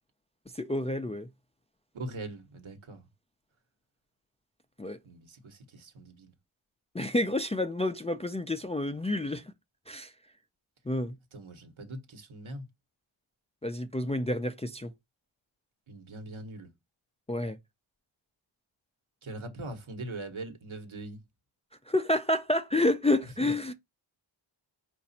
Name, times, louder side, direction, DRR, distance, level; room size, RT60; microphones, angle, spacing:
voice 1, 0.5-1.3 4.8-5.0 6.9-9.4 9.9-10.1 10.9-11.2 13.6-14.9 17.3-17.6 21.9-23.7, left 1 dB, 15° left, 0.3 m, -29 dB
voice 2, 1.9-3.1 5.0-6.3 11.3-12.7 15.9-16.7 19.2-21.2, right 2 dB, 75° right, 1.3 m, -41 dB
4.9 x 2.6 x 4.1 m
wide cardioid pair, 100°, 48 cm